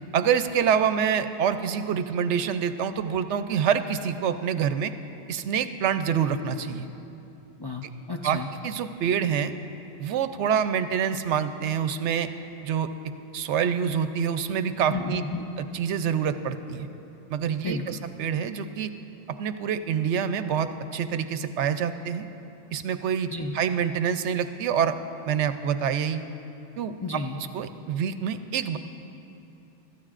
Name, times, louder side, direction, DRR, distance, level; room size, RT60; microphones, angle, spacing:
voice 1, 0.1-4.9 5.3-6.9 8.2-8.4 8.6-9.5 10.0-12.3 12.6-12.9 13.3-15.2 15.7-16.9 17.3-18.9 19.4-22.3 22.7-25.0 25.3-26.2 26.8-26.9 27.5-28.8, right 8 dB, 80° right, 10 dB, 0.9 m, -26 dB
voice 2, 7.6-8.5 14.9-15.4 17.6-18.0 23.3-23.6 27.0-27.4, left 3 dB, 30° left, 0 dB, 0.4 m, -32 dB
24.0 x 13.5 x 2.5 m, 2.9 s
omnidirectional pair, 1.2 m